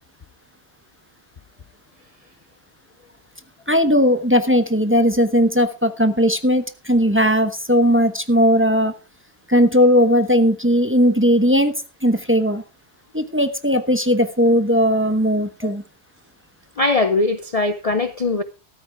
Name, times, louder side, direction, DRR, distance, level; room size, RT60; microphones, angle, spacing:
voice 1, 3.7-8.9 9.5-11.7 12.0-12.6 13.1-15.8, equal, 10° right, 1.0 m, -17 dB
voice 2, 16.8-18.4, left 3 dB, 40° left, 0.7 m, -20 dB
13.5 x 13.0 x 3.5 m
omnidirectional pair, 1.2 m